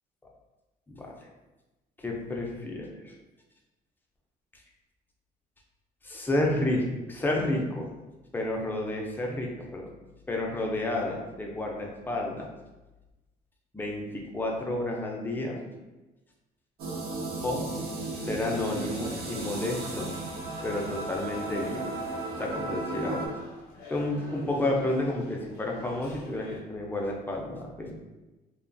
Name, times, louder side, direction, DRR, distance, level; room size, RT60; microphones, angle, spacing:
voice 1, 2.0-3.0 6.0-7.9 8.3-9.9 10.3-12.5 13.7-15.6 17.4-17.6 18.2-20.1 20.6-21.9 22.4-23.3 23.9-27.9, left 1 dB, 10° left, -1 dB, 0.4 m, -31 dB
sound 1, 16.8-23.3, right 2 dB, 70° right, 0.5 m, -35 dB
sound 2, 18.5-26.6, left 2 dB, 65° left, 0.7 m, -47 dB
2.4 x 2.2 x 2.5 m, 1.1 s
cardioid pair, 110°, 17 cm